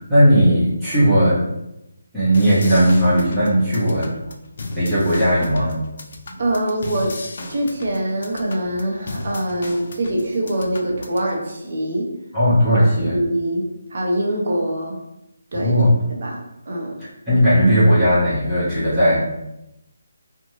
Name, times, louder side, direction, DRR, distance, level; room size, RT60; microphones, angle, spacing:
voice 1, 0.1-1.4 2.1-4.1 4.7-5.8 12.3-13.2 15.5-15.9 17.3-19.2, equal, ahead, -16 dB, 1.0 m, -16 dB
sound 1, 2.3-11.3, left 2 dB, 50° left, 0.4 m, -35 dB
voice 2, 6.4-7.1 7.5-12.1 12.7-12.8 13.1-13.6 13.9-15.0 15.5-15.8 16.1-16.4 16.7-16.9, right 1 dB, 50° right, -1 dB, 0.7 m, -23 dB
2.5 x 2.2 x 3.1 m, 0.88 s
hypercardioid pair, 165°, 0 cm